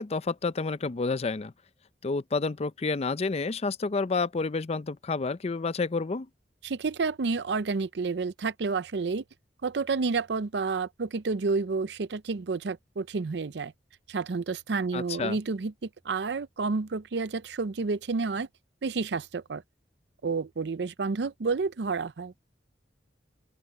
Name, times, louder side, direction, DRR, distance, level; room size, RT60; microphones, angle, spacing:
voice 1, 0.0-1.5 2.0-6.3 14.9-15.4, left 4 dB, 35° left, 0.5 m, -29 dB
voice 2, 6.6-9.2 9.6-13.7 14.1-18.5 18.8-19.6 20.2-22.3, right 4 dB, 70° right, 0.5 m, -30 dB
open air
head